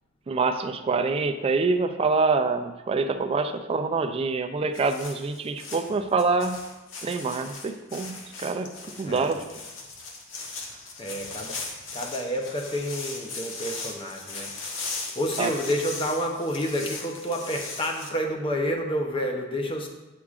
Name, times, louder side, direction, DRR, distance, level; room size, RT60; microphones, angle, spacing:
voice 1, 0.3-6.6 7.0-8.1 8.4-9.4 15.4-15.5, right 4 dB, 30° right, 7 dB, 0.3 m, -26 dB
sound 1, 4.7-18.1, left 3 dB, 75° left, 0.8 m, -38 dB
voice 2, 11.0-11.6 11.9-19.9, equal, 25° left, 2 dB, 0.7 m, -29 dB
8.3 x 4.8 x 2.4 m, 1.1 s
head